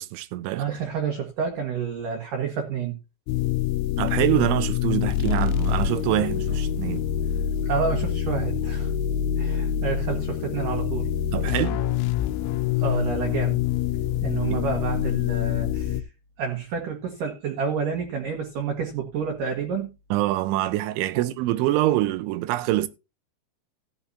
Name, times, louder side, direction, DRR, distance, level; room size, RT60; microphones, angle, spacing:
voice 1, 0.0-0.8 4.0-7.0 11.3-11.8 20.1-22.9, right 15 dB, 80° right, 3.0 m, -25 dB
voice 2, 0.5-3.0 7.7-8.9 9.4-11.1 12.8-13.6 14.2-16.0 16.4-19.9 21.1-21.2, right 6 dB, 60° right, 2.4 m, -29 dB
sound 1, 3.3-16.0, left 10 dB, 80° left, 2.9 m, -26 dB
15.0 x 9.7 x 2.8 m
omnidirectional pair, 5.8 m